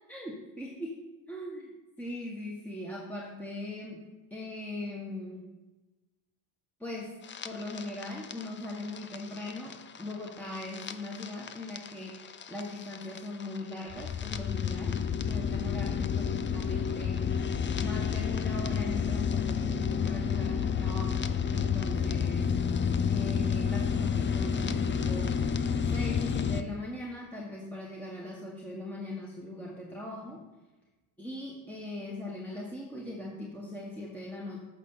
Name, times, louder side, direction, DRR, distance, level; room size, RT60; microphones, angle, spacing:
voice 1, 0.1-1.0 1.3-4.0 4.3-5.5 6.8-7.1 7.4-17.3 17.8-22.5 23.1-30.4 31.2-34.6, left 1 dB, 5° left, -4 dB, 1.5 m, -40 dB
sound 1, 7.2-26.6, left 7 dB, 25° left, 0.5 m, -30 dB
8.5 x 5.2 x 5.7 m, 1.1 s
supercardioid pair, 75°, 45 cm